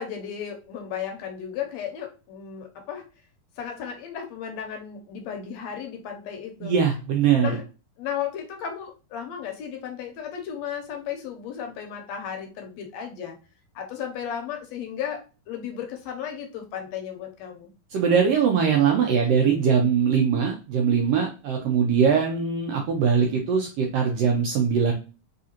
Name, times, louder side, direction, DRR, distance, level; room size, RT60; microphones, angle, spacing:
voice 1, 0.0-3.0 3.6-6.7 7.4-7.6 8.0-13.4 13.8-17.7, left 8 dB, 75° left, 4 dB, 1.8 m, -34 dB
voice 2, 6.6-7.5 17.9-24.9, right 6 dB, 80° right, 2 dB, 1.4 m, -21 dB
4.1 x 3.7 x 2.8 m, 0.33 s
omnidirectional pair, 3.4 m